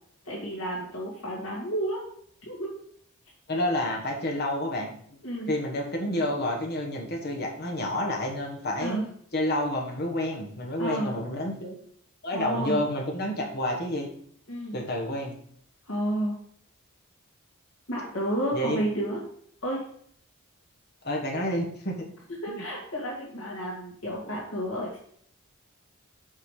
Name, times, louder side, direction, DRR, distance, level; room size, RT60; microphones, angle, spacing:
voice 1, 0.2-2.0 2.5-2.7 5.2-5.5 8.8-9.1 10.8-11.1 12.3-12.8 14.5-14.8 15.8-16.3 17.9-19.2 19.6-19.8 22.4-25.0, right 1 dB, 75° left, -5 dB, 2.0 m, -31 dB
voice 2, 3.5-4.9 5.5-9.0 9.3-11.7 12.2-14.1 14.7-15.3 18.5-18.8 21.0-22.0 22.5-22.6, left 1 dB, 45° left, 0 dB, 1.3 m, -29 dB
5.7 x 5.0 x 4.9 m, 0.63 s
head